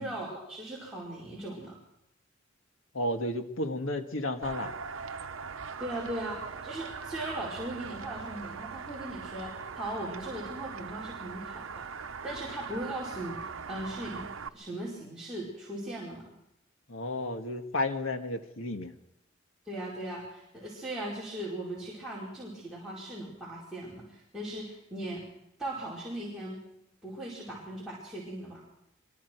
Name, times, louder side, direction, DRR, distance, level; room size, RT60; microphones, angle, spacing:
voice 1, 0.0-1.7 5.8-11.9 12.2-14.3 14.5-16.2 19.6-25.2 25.6-26.6 27.0-28.6, right 1 dB, 5° right, -8 dB, 4.9 m, -38 dB
voice 2, 2.9-4.7 16.9-18.9, left 1 dB, 80° left, 6 dB, 1.7 m, -32 dB
sound 1, 4.4-14.5, right 5 dB, 80° right, 0.9 m, -41 dB
25.0 x 23.0 x 4.6 m, 0.83 s
head